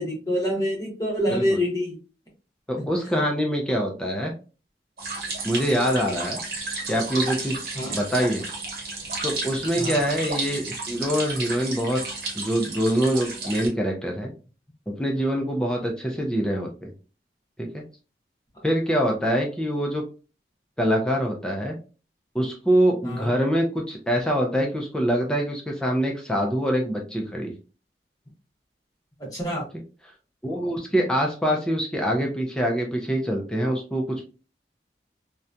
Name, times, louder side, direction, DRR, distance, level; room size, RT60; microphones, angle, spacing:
voice 1, 0.0-2.0 7.7-8.0 9.8-10.0 23.0-23.3 29.2-29.6, equal, 20° left, -2 dB, 0.9 m, -26 dB
voice 2, 2.7-4.3 5.4-6.4 6.9-7.6 7.9-8.5 9.2-12.0 12.4-14.3 14.9-16.9 17.6-17.8 18.6-20.0 20.8-21.8 22.3-27.5 30.4-34.2, equal, 5° left, 0 dB, 0.4 m, -24 dB
sound 1, 5.0-13.7, right 3 dB, 60° right, 0.9 m, -32 dB
2.8 x 2.1 x 2.4 m, 0.34 s
head